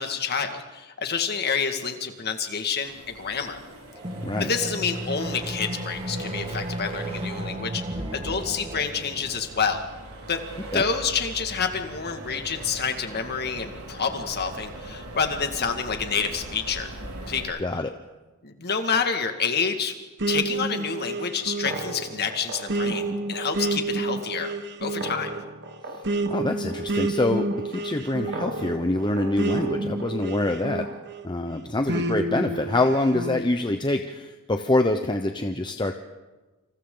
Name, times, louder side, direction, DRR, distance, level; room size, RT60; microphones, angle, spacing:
voice 1, 0.0-3.6 4.4-7.8 8.1-9.8 10.3-10.4 10.7-16.9 17.3-17.6 18.4-19.9 20.3-24.5 24.8-25.3, left 6 dB, 50° left, 6 dB, 2.0 m, -28 dB
Accelerating revving vroom, 2.8-17.4, right 1 dB, 90° right, 4.6 m, -41 dB
sound 1, 3.9-9.6, right 1 dB, 25° right, 1.7 m, -34 dB
voice 2, 17.6-17.9 25.9-26.0 26.3-30.9 31.2-36.0, left 2 dB, 20° left, 5 dB, 0.9 m, -25 dB
sound 2, 20.2-31.3 31.9-33.4, right 2 dB, 55° right, 1.4 m, -29 dB
28.5 x 27.0 x 3.9 m, 1.2 s
head